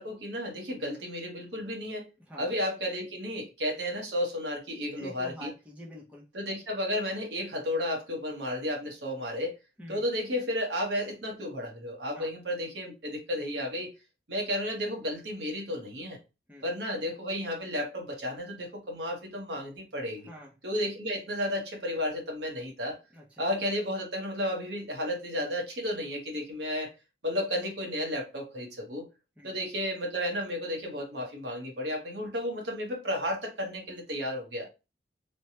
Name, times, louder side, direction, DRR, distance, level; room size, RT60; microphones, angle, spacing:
voice 1, 0.0-2.1 2.4-5.5 6.3-9.6 9.9-13.9 14.3-16.2 16.6-20.3 20.6-23.0 23.4-26.9 27.2-29.0 29.4-34.7, left 1 dB, 80° right, 1 dB, 1.0 m, -33 dB
voice 2, 4.9-6.3 9.8-10.0 12.1-12.3 16.5-16.6 20.3-20.5 23.1-23.4 29.4-29.5 34.6-34.7, right 1 dB, 10° right, -3 dB, 0.7 m, -46 dB
3.2 x 2.2 x 2.7 m, 0.28 s
head